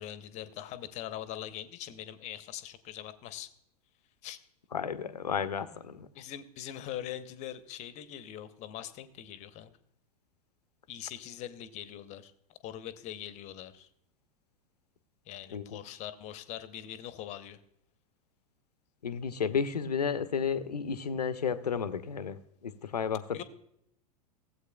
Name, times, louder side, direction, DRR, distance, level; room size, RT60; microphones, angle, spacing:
voice 1, 0.0-3.5 4.2-4.4 6.1-9.7 10.9-12.3 12.6-13.9 15.3-17.6 23.3-23.4, left 11 dB, 35° left, 13 dB, 0.8 m, -42 dB
voice 2, 4.7-5.7 5.9-6.1 15.5-15.8 19.0-22.4 22.6-23.4, left 6 dB, 75° left, 13 dB, 0.7 m, -32 dB
16.0 x 8.0 x 2.2 m, 0.74 s
figure-of-eight pair, 90°, 20 cm